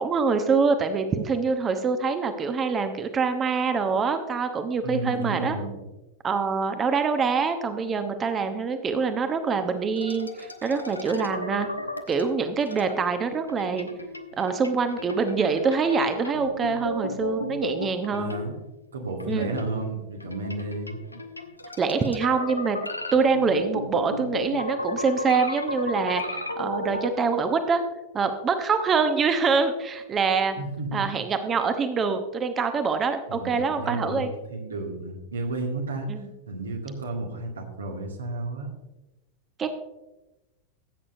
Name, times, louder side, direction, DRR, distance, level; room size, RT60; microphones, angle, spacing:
voice 1, 0.0-5.6 6.2-11.7 12.1-13.9 14.4-18.3 19.3-19.5 21.8-22.8 23.1-27.8 28.1-30.6 30.9-34.3 36.1-36.3 39.6-39.7, right 5 dB, 25° right, 8 dB, 0.9 m, -25 dB
voice 2, 4.8-5.8 18.1-18.5 18.9-21.0 30.6-31.1 33.3-36.1 36.5-38.7, right 2 dB, 70° right, 2 dB, 1.9 m, -32 dB
sound 1, 10.0-13.0 13.5-18.8 19.2-27.1, left 1 dB, 85° left, 0.8 m, -34 dB
15.5 x 8.5 x 2.7 m, 1.0 s
figure-of-eight pair, 90°, 0 cm